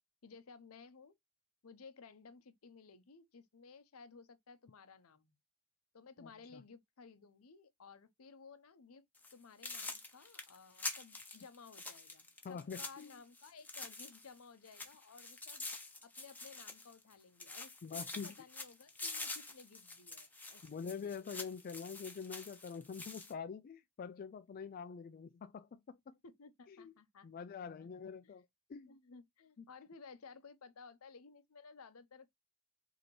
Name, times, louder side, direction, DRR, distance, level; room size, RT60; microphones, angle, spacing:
voice 1, 0.2-1.1 1.6-5.4 5.9-9.1 9.3-15.7 16.0-17.7 18.1-20.8 26.2-28.3 28.9-32.4, left 5 dB, 75° left, 0.7 m, -57 dB
voice 2, 6.2-6.6 12.4-13.1 17.8-18.3 20.6-26.2 26.7-26.9 27.2-29.0 29.6-29.7, left 6 dB, 40° left, 0.3 m, -46 dB
sound 1, 9.1-9.3 9.6-14.4 14.6-17.1 17.4-23.3, left 3 dB, 10° left, 0.8 m, -46 dB
5.1 x 2.8 x 3.0 m
head